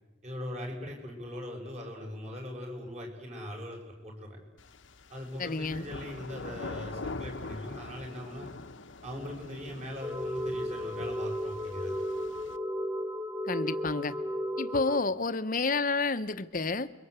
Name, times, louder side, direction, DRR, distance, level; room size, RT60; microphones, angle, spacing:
voice 1, 0.2-4.4 5.1-8.5 9.0-12.0, left 1 dB, 35° right, 7.0 m, -40 dB
sound 1, 4.6-12.6, left 3 dB, 80° left, 1.1 m, -44 dB
voice 2, 5.4-5.9 13.5-14.2 14.6-16.9, left 3 dB, 45° left, 1.0 m, -30 dB
sound 2, 10.0-15.0, equal, 20° right, 1.4 m, -34 dB
28.5 x 23.5 x 8.2 m
head